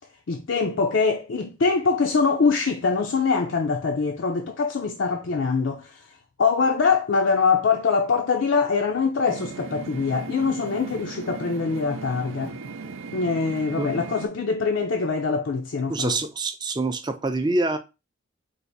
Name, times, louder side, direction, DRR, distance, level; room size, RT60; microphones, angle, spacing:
voice 1, 0.3-12.6 13.1-16.2, left 5 dB, 70° left, 0.5 m, -23 dB
sound 1, 9.3-14.3, right 4 dB, 90° right, 0.5 m, -37 dB
voice 2, 15.9-17.8, right 2 dB, 20° right, 0.4 m, -25 dB
4.7 x 2.5 x 4.0 m
head